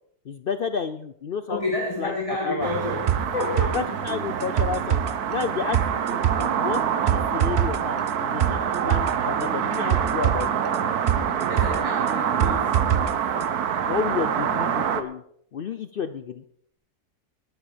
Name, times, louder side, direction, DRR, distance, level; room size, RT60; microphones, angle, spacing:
voice 1, 0.3-1.6 2.0-2.1 2.4-2.7 3.7-5.0 5.3-10.5 13.9-15.2 15.5-16.4, left 6 dB, 75° left, 12 dB, 0.5 m, -31 dB
voice 2, 1.5-3.8 11.5-12.8, left 2 dB, 20° left, -1 dB, 2.3 m, -29 dB
sound 1, 2.6-15.0, right 8 dB, 70° right, 1.4 m, -26 dB
sound 2, 3.1-13.1 13.4-13.5, right 9 dB, 50° right, 0.9 m, -26 dB
19.0 x 9.5 x 5.0 m, 0.67 s
omnidirectional pair, 1.7 m